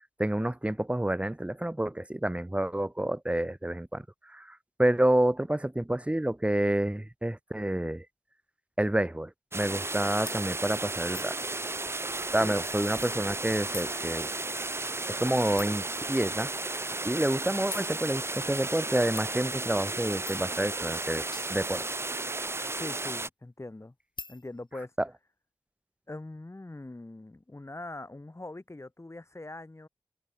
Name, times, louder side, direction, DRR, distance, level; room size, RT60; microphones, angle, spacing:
voice 1, 0.2-8.0 8.8-11.4 12.3-14.3 15.2-16.5 17.0-21.2 21.5-21.8, right 1 dB, 15° right, 1.2 m, -28 dB
sound 1, 9.5-23.3, right 2 dB, 30° right, 0.6 m, -34 dB
sound 2, 10.3-10.4 11.1-11.4 12.1-13.5 13.7-13.9 14.3-14.4 14.8-14.9 15.6-15.9 16.4-16.6 17.7-17.9 19.2-19.3 20.3-20.5 21.0-22.5 24.2-24.4, left 4 dB, 60° left, 2.3 m, -44 dB
voice 2, 22.8-23.9 24.3-24.9 26.1-29.9, left 2 dB, 30° left, 4.5 m, -42 dB
wide cardioid pair, 80°, 9 cm